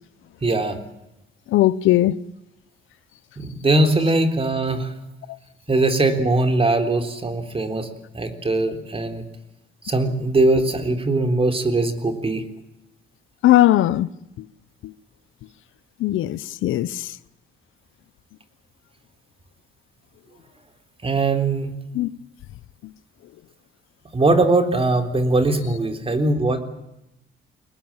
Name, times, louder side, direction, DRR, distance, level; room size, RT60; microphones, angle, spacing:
voice 1, 0.4-0.8 3.4-4.9 5.7-7.9 8.1-9.2 9.8-12.4 21.0-21.7 24.1-26.6, right 2 dB, 30° right, 3.7 m, -21 dB
voice 2, 1.5-2.1 13.4-14.1 16.0-16.9 22.0-22.1, left 14 dB, 85° left, 0.8 m, -18 dB
24.0 x 19.5 x 8.9 m
cardioid pair, 90°, 20 cm